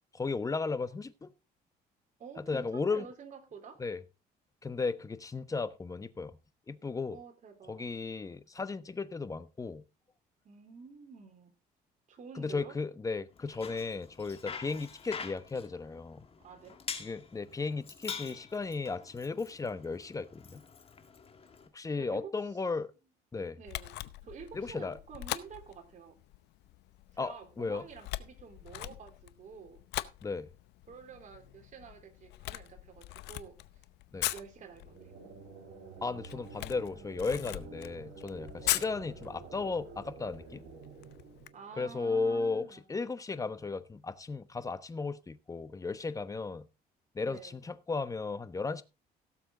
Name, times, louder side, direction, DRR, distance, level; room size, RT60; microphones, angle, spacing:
voice 1, 0.1-1.3 2.4-3.1 3.8-4.0 4.6-6.4 6.7-7.2 7.7-9.8 12.3-16.3 16.9-20.6 21.7-22.9 23.3-23.6 24.5-25.0 27.2-27.8 30.2-30.5 34.1-34.3 36.0-40.6 41.8-46.7 47.1-48.8, left 4 dB, 20° left, 1.0 m, -35 dB
voice 2, 2.2-3.8 7.1-7.9 10.4-11.5 12.1-12.7 16.4-16.8 22.0-22.3 23.5-26.2 27.1-29.8 30.9-33.6 34.3-35.0 38.5-38.8 41.5-42.8 47.2-47.6, right 6 dB, 45° right, 3.9 m, -49 dB
Bicycle, 13.3-21.7, left 6 dB, 35° left, 2.2 m, -46 dB
Camera, 23.6-41.5, left 16 dB, 85° left, 0.7 m, -41 dB
sound 1, 34.7-42.3, right 5 dB, 80° right, 3.6 m, -50 dB
17.0 x 7.3 x 3.8 m
cardioid pair, 110°, 17 cm